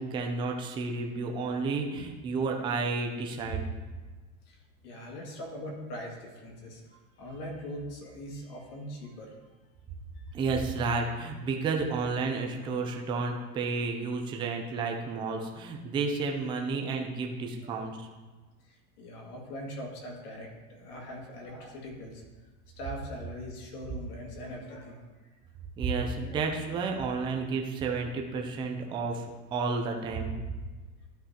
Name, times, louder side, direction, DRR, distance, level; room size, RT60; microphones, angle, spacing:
voice 1, 0.0-3.6 10.3-18.1 25.8-30.3, right 4 dB, 10° right, 2 dB, 0.4 m, -31 dB
voice 2, 4.8-9.4 10.2-10.3 17.6-17.9 18.6-22.2 22.8-25.0 26.1-26.5, equal, 85° left, -1 dB, 2.4 m, -42 dB
12.0 x 5.4 x 2.9 m, 1.3 s
supercardioid pair, 145°, 45 cm